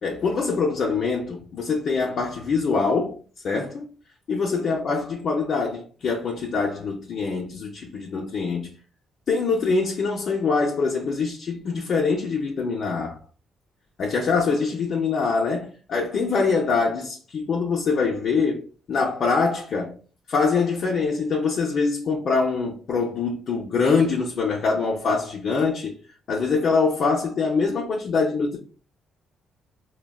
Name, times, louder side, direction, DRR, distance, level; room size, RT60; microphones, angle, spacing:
voice 1, 0.0-3.2 3.4-3.9 4.3-8.8 9.3-13.2 14.0-20.0 20.3-25.9 26.3-28.6, left 4 dB, 60° left, 0.5 m, -24 dB
3.3 x 2.2 x 2.2 m
cardioid pair, 90°, 0 cm